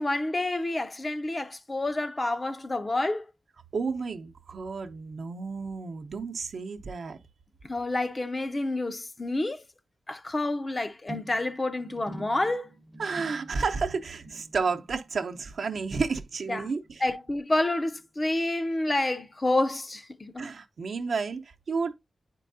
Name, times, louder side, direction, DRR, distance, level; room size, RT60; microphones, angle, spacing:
voice 1, 0.0-3.2 7.6-9.6 10.1-12.7 16.5-16.7 17.0-20.5, left 2 dB, 25° left, 0.5 m, -29 dB
voice 2, 3.7-7.2 13.0-17.0 20.4-21.9, right 4 dB, 70° right, 0.7 m, -31 dB
sound 1, 11.1-17.7 17.9-18.4 18.7-18.8, right 1 dB, 25° right, 0.7 m, -47 dB
9.2 x 4.5 x 2.6 m
wide cardioid pair, 110°, 0 cm